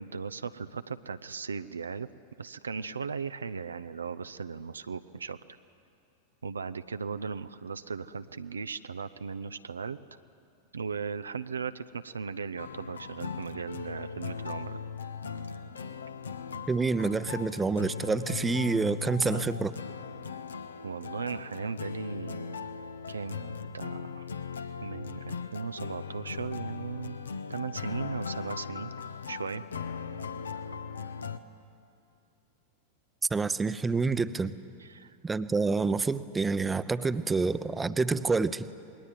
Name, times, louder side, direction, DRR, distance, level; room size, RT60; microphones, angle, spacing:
voice 1, 0.0-2.1 2.4-5.4 6.4-10.0 10.7-14.8 20.8-22.7 23.1-24.3 24.8-27.2 27.5-28.9 29.3-29.6 34.8-35.2, right 5 dB, 75° right, 11 dB, 0.7 m, -37 dB
sound 1, 12.6-31.4, left 6 dB, 70° left, 1.1 m, -39 dB
voice 2, 16.7-19.7 33.3-34.5 35.2-38.7, right 4 dB, 10° right, 14 dB, 0.9 m, -28 dB
28.0 x 21.0 x 9.1 m, 2.5 s
figure-of-eight pair, 90°, 0 cm